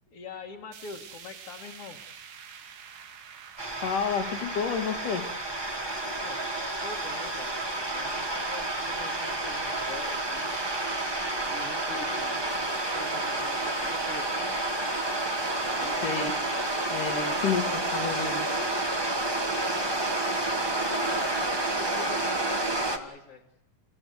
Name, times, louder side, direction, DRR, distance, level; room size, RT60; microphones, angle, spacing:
voice 1, 0.1-2.0 6.0-6.4 6.8-10.5 11.4-14.6 15.5-16.1 20.8-21.4 21.6-23.5, left 5 dB, 50° left, -2 dB, 2.5 m, -43 dB
sound 1, 0.7-10.9 11.3-11.4 11.8-11.9 12.7-12.8, right 7 dB, 85° right, 3.3 m, -50 dB
sound 2, 3.6-23.0, right 2 dB, 20° right, 0.6 m, -30 dB
voice 2, 3.8-5.3 16.0-16.3 16.9-18.5, left 6 dB, 80° left, 4 dB, 3.9 m, -30 dB
sound 3, 7.8-14.7, right 3 dB, 60° right, 3.5 m, -52 dB
30.0 x 16.0 x 8.1 m, 0.89 s
omnidirectional pair, 3.6 m